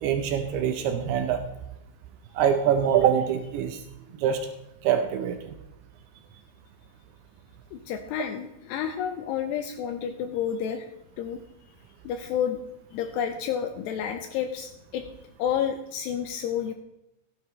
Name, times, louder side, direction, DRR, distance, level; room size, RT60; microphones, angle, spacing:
voice 1, 0.0-1.4 2.4-3.8 4.2-4.5 4.8-5.5, right 8 dB, 80° right, 7 dB, 2.3 m, -24 dB
voice 2, 7.7-10.9 11.2-11.4 12.0-12.6 12.9-15.0 15.4-16.7, left 8 dB, 80° left, 7 dB, 2.5 m, -30 dB
15.5 x 10.0 x 3.2 m, 0.87 s
omnidirectional pair, 5.5 m